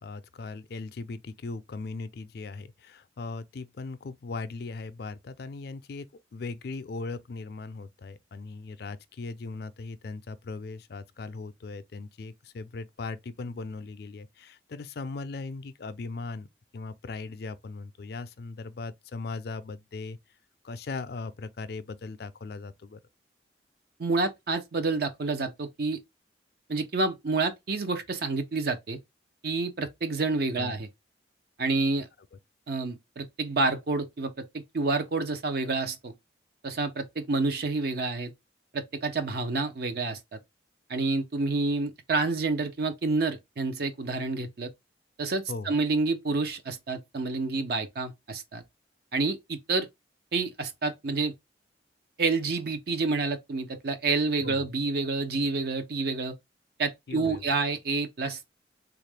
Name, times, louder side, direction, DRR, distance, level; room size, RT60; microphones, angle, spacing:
voice 1, 0.0-16.5 16.7-20.2 20.6-23.0 30.6-30.8 45.5-45.8 54.4-54.7 57.1-57.4, left 3 dB, 60° left, 0.4 m, -38 dB
voice 2, 24.0-26.0 26.7-29.0 29.4-30.9 31.6-32.1 32.7-36.1 36.6-38.3 38.7-40.4 40.9-44.7 45.2-48.6 49.1-49.9 50.3-51.3 52.2-56.3 56.8-58.5, right 3 dB, 60° right, 0.5 m, -28 dB
3.5 x 2.4 x 3.2 m
head